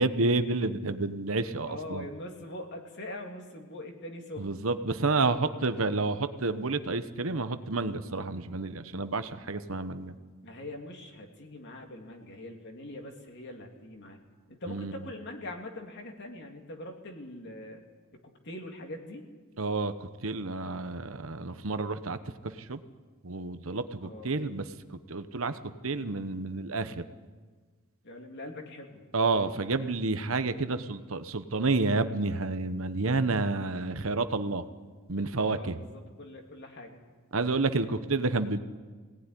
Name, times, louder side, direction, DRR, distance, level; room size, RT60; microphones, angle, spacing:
voice 1, 0.0-2.1 4.4-10.1 14.7-14.9 19.6-22.2 22.4-22.8 23.2-24.6 24.9-27.0 29.1-34.6 35.1-35.8 37.3-38.6, right 3 dB, 65° right, 10 dB, 1.1 m, -30 dB
voice 2, 1.7-4.6 10.4-14.2 14.5-17.8 18.1-19.3 24.0-24.3 28.0-29.0 35.5-37.0, left 1 dB, 55° left, 2 dB, 3.1 m, -42 dB
22.0 x 18.0 x 9.9 m, 1.4 s
head